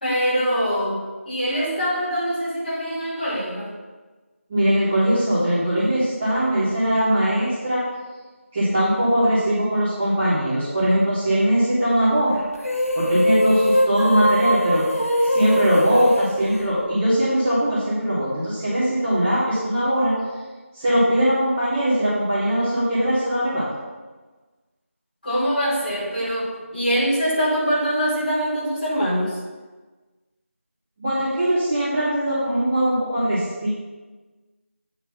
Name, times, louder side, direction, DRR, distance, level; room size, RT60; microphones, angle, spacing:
voice 1, 0.0-3.7 25.2-29.4, equal, 40° left, -7 dB, 2.6 m, -23 dB
voice 2, 4.5-7.8 8.5-12.4 12.9-15.0 15.2-20.2 20.7-23.7 31.0-33.7, equal, 5° right, -14 dB, 0.6 m, -21 dB
sound 1, 12.6-17.3, equal, 85° left, 1.3 m, -22 dB
8.6 x 3.9 x 5.6 m, 1.3 s
figure-of-eight pair, 175°, 8 cm